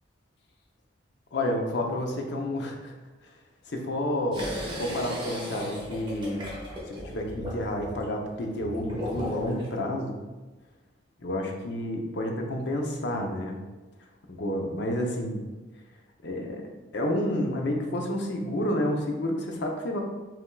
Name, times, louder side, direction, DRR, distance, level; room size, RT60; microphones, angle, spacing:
voice 1, 1.3-2.9 3.7-4.5 4.8-6.5 6.9-10.2 11.2-13.6 14.3-15.4 16.2-20.0, left 1 dB, 65° left, 2 dB, 0.7 m, -30 dB
sound 1, 4.3-9.7, left 1 dB, 25° right, 1.1 m, -36 dB
5.5 x 3.5 x 2.3 m, 1.2 s
head